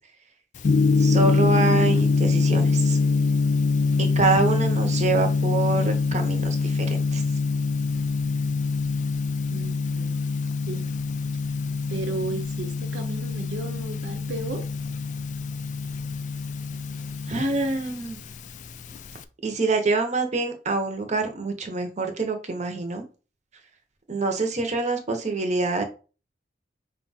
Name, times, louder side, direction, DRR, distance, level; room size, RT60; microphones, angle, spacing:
Gong, 0.6-19.2, left 4 dB, 40° left, 0.3 m, -24 dB
voice 1, 1.0-3.0 4.0-7.2 17.3-18.2 19.4-23.0 24.1-25.8, right 3 dB, 40° right, 0.8 m, -26 dB
voice 2, 9.5-10.3 10.7-10.9 11.9-14.7, right 3 dB, 65° right, 0.5 m, -34 dB
4.4 x 2.3 x 4.0 m
head